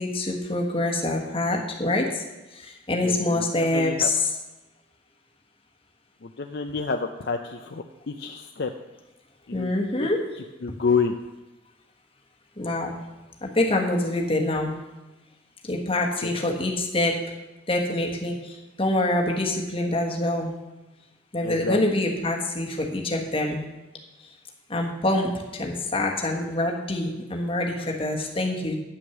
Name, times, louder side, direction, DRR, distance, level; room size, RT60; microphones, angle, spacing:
voice 1, 0.0-2.2 2.5-4.2 9.5-10.2 12.6-13.0 13.4-14.7 15.6-17.1 17.7-20.5 21.3-23.6 24.7-28.7, left 1 dB, 30° left, 0 dB, 1.4 m, -25 dB
voice 2, 3.0-3.5 3.7-4.1 6.2-8.7 9.5-9.7 10.0-10.1 10.6-11.2 16.2-16.4 21.4-21.8, left 5 dB, 55° left, 5 dB, 0.5 m, -28 dB
9.6 x 6.1 x 7.1 m, 1.1 s
head